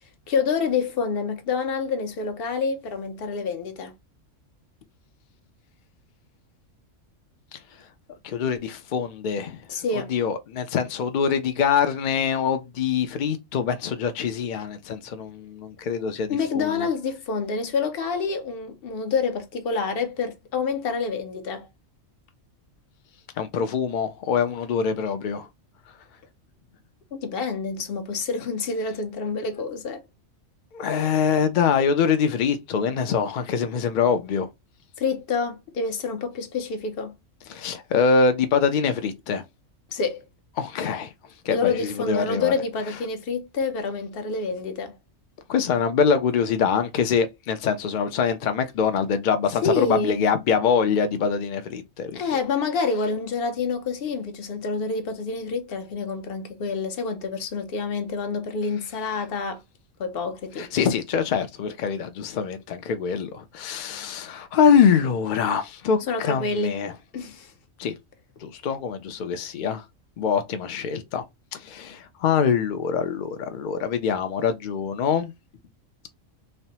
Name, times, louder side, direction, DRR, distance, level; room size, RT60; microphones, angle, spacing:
voice 1, 0.3-3.9 9.7-10.1 16.3-21.7 27.1-30.0 35.0-37.1 39.9-40.2 41.5-44.9 49.6-50.2 52.1-59.6 60.0-60.7 66.1-66.8 67.1-67.5, left 4 dB, 55° left, 0.7 m, -27 dB
voice 2, 8.2-9.6 10.1-16.9 23.4-25.5 30.7-34.5 37.5-39.4 40.6-41.1 41.5-42.5 45.5-52.2 60.6-66.9 67.8-67.9 68.4-69.8 70.2-71.2 71.5-75.3, left 6 dB, 90° left, 0.4 m, -24 dB
3.2 x 2.0 x 2.7 m
omnidirectional pair, 1.4 m